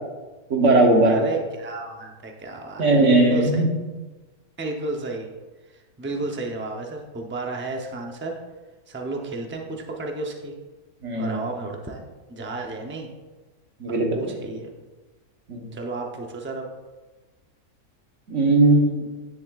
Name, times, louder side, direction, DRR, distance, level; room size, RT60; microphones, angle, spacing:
voice 1, 0.5-1.2 2.8-3.7 11.0-11.4 13.8-14.3 15.5-15.7 18.3-19.0, right 2 dB, 55° right, 1 dB, 1.5 m, -18 dB
voice 2, 1.0-3.6 4.6-5.3 5.7-8.4 8.9-10.5 11.1-12.0 12.3-13.1 13.9-14.7 15.7-16.7, right 2 dB, 15° right, 1 dB, 0.4 m, -32 dB
10.0 x 7.0 x 2.4 m, 1.2 s
omnidirectional pair, 1.6 m